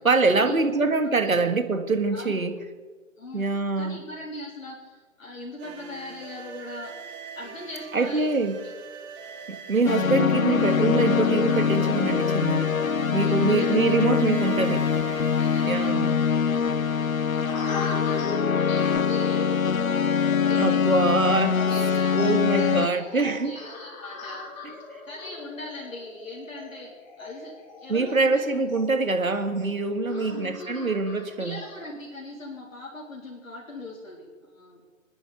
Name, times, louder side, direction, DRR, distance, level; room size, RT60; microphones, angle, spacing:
voice 1, 0.0-2.5 3.3-4.0 7.9-8.6 9.5-12.7 13.1-14.8 15.7-16.1 20.6-21.6 22.1-23.6 24.6-24.8 27.9-31.6, right 3 dB, 85° right, 7 dB, 2.0 m, -24 dB
voice 2, 3.2-6.9 7.4-8.3 8.6-8.7 13.2-14.0 15.4-19.6 20.3-21.1 21.7-24.4 25.0-28.5 30.1-30.9 31.4-35.0, left 2 dB, 70° left, -3 dB, 3.8 m, -41 dB
sound 1, 5.6-15.9, right 6 dB, 15° right, 1.1 m, -42 dB
sound 2, 9.9-22.9, left 6 dB, 90° left, 0.8 m, -23 dB
sound 3, 17.5-31.8, left 3 dB, 35° left, 4.1 m, -39 dB
27.5 x 10.0 x 5.1 m, 1.4 s
figure-of-eight pair, 145°, 40 cm